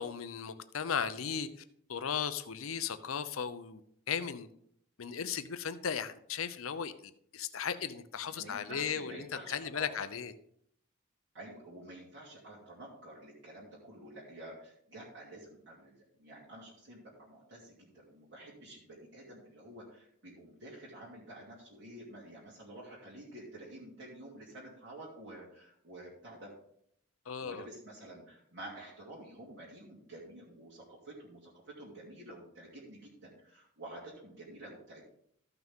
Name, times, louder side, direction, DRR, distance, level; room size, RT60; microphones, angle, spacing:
voice 1, 0.0-1.5 1.9-3.8 4.1-4.5 5.0-6.9 7.3-10.3 27.3-27.7, left 7 dB, 90° left, 12 dB, 0.7 m, -36 dB
voice 2, 8.2-10.0 11.3-26.5 27.4-35.0, right 1 dB, 60° right, -7 dB, 2.6 m, -50 dB
14.0 x 5.9 x 3.7 m, 0.69 s
head